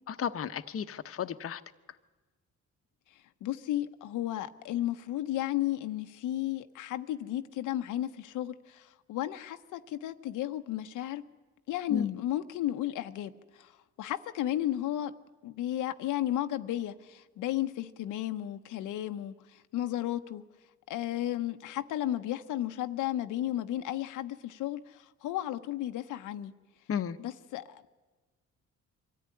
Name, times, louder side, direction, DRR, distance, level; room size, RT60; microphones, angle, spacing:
voice 1, 0.1-1.6 11.9-12.2 26.9-27.2, left 8 dB, 50° left, 9 dB, 0.9 m, -33 dB
voice 2, 3.4-11.2 11.7-15.1 15.4-20.4 20.9-26.5 27.2-27.9, left 13 dB, 90° left, 8 dB, 0.9 m, -34 dB
24.0 x 14.0 x 9.8 m, 1.3 s
cardioid pair, 90°, 30 cm